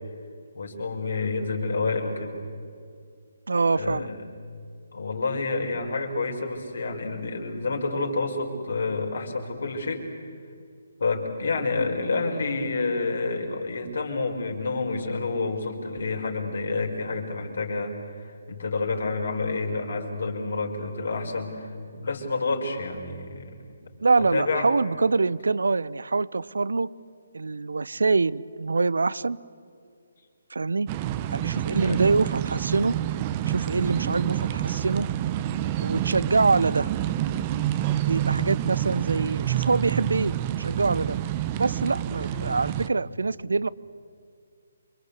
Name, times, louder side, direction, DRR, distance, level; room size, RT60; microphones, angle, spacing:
voice 1, 0.5-2.4 3.7-4.2 4.9-10.0 11.0-23.7 24.3-24.6 31.8-32.0 42.3-42.5, left 3 dB, 60° left, 2 dB, 5.1 m, -29 dB
voice 2, 3.5-4.1 24.0-26.9 27.3-29.4 30.5-30.9 31.3-32.9 33.5-35.1 35.8-36.9 38.1-41.2 41.6-43.7, right 3 dB, 65° right, 20 dB, 0.7 m, -25 dB
sound 1, 30.9-42.9, right 12 dB, 25° right, 1.0 m, -28 dB
28.5 x 24.5 x 8.3 m, 2.3 s
figure-of-eight pair, 140°, 0 cm